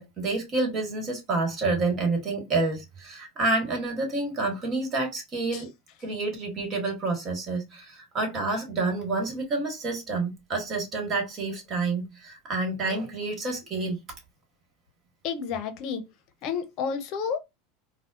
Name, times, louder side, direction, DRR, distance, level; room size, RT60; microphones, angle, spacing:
voice 1, 0.0-5.7 6.0-14.0, right 3 dB, 35° right, 1.6 m, -28 dB
voice 2, 15.2-16.0 16.4-17.4, left 6 dB, 55° left, 0.7 m, -30 dB
4.1 x 2.2 x 2.5 m
hypercardioid pair, 110°, 0 cm